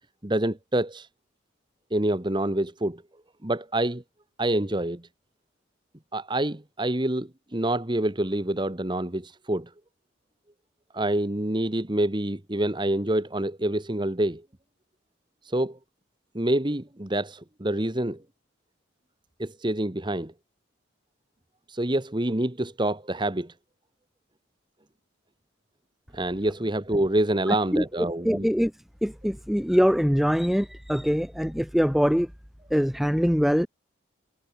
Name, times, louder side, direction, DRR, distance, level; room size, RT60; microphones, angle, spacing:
voice 1, 0.2-1.1 1.9-3.0 3.4-4.0 4.4-5.0 6.1-9.7 10.9-14.4 15.4-15.8 16.3-18.2 19.4-20.3 21.7-23.5 26.1-28.5, right 1 dB, 25° right, 1.3 m, -27 dB
voice 2, 27.5-28.7 29.0-32.3 32.7-33.7, equal, ahead, 1.0 m, -23 dB
head